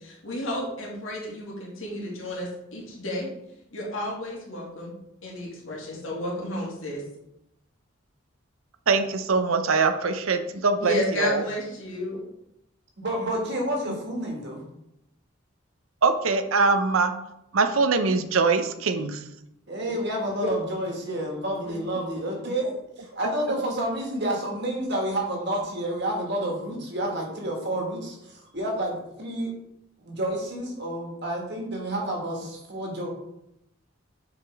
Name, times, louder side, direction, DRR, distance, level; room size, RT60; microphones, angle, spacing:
voice 1, 0.0-3.3 3.7-4.9 5.2-7.0 10.8-12.2 20.4-20.5, left 1 dB, 75° left, -3 dB, 2.2 m, -32 dB
voice 2, 8.9-11.4 16.0-17.1 17.5-19.2 22.5-22.6, right 4 dB, 85° right, 8 dB, 0.6 m, -23 dB
voice 3, 13.0-14.6 19.7-22.7 23.0-29.5 30.0-33.1, right 1 dB, 55° right, 0 dB, 1.8 m, -29 dB
7.1 x 5.1 x 3.5 m, 0.82 s
head